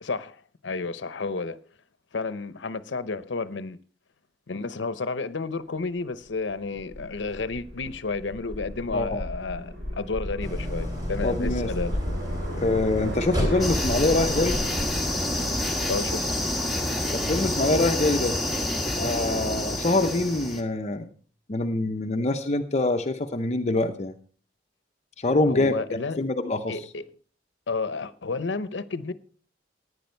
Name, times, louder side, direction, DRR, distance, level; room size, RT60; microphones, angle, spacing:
voice 1, 0.0-1.6 2.1-3.8 4.5-12.0 15.9-16.4 25.5-26.2 26.7-27.1 27.7-29.1, left 4 dB, 80° left, 0.7 m, -31 dB
sound 1, 6.6-14.8, equal, 75° right, 3.3 m, -34 dB
Idling, 10.4-17.5, equal, 20° right, 3.8 m, -34 dB
voice 2, 11.2-11.7 12.6-14.6 17.1-18.4 19.0-21.1 21.5-24.1 25.2-25.7 26.2-26.8, left 2 dB, 35° left, 0.7 m, -25 dB
sound 2, 13.6-20.6, left 1 dB, ahead, 1.5 m, -28 dB
15.0 x 9.7 x 4.5 m
head